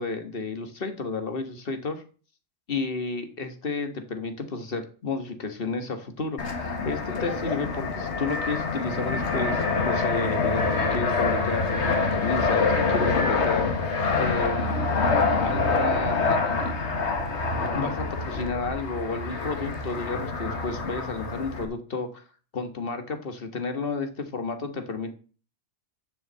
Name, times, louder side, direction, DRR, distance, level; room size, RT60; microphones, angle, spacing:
voice 1, 0.0-2.0 2.7-13.7 14.2-14.7 15.4-16.8 17.7-22.2 22.5-25.1, left 4 dB, 55° left, 7 dB, 1.6 m, -32 dB
Fixed-wing aircraft airplane, 6.4-21.7, left 3 dB, 80° left, 1.8 m, -26 dB
7.1 x 6.5 x 7.5 m, 0.39 s
omnidirectional pair, 1.1 m